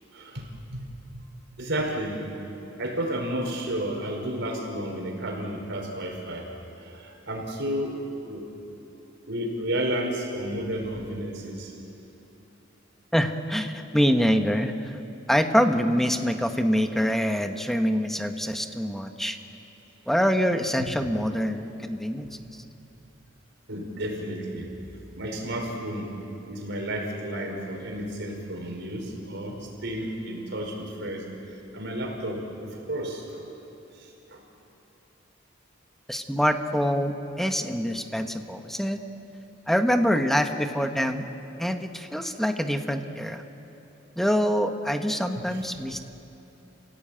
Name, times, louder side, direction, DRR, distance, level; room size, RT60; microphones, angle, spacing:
voice 1, 0.1-0.8 1.1-1.2 1.6-2.2 2.8-6.5 6.8-8.0 8.3-8.4 9.3-11.7 23.7-24.7 25.2-26.2 26.5-31.2 31.7-33.4 34.3-34.4 45.3-45.6, right 1 dB, 65° right, 1 dB, 5.0 m, -32 dB
voice 2, 13.1-14.9 15.3-19.4 20.1-22.3 36.1-39.0 39.7-41.3 41.6-43.4 44.2-46.0, equal, ahead, 6 dB, 1.2 m, -25 dB
30.0 x 17.0 x 8.9 m, 3.0 s
head